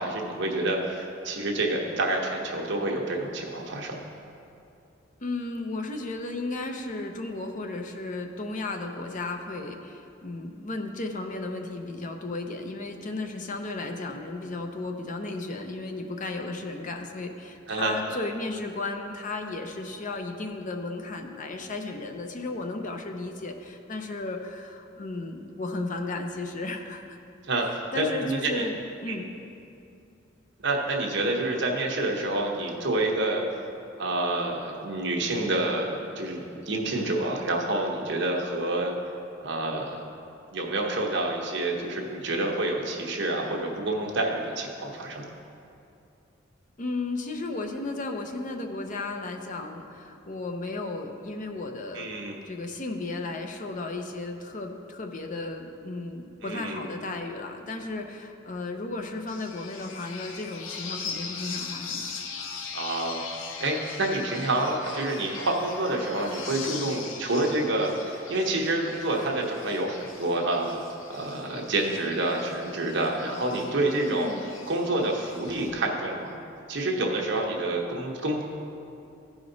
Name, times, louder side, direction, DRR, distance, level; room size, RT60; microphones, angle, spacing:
voice 1, 0.0-4.0 17.7-17.9 27.5-28.6 29.1-29.2 30.6-33.4 34.0-39.0 39.4-40.0 40.5-45.3 51.9-52.4 56.4-56.9 62.7-63.2 63.6-70.8 71.1-74.3 74.7-76.3 76.7-78.4, right 2 dB, 65° right, 0 dB, 1.1 m, -28 dB
voice 2, 5.2-27.2 27.6-29.3 46.8-52.1 52.4-62.1 74.1-74.5, left 2 dB, 40° left, 4 dB, 0.6 m, -34 dB
sound 1, 59.3-75.7, left 5 dB, 80° left, 0.7 m, -40 dB
14.5 x 5.0 x 4.0 m, 2.6 s
head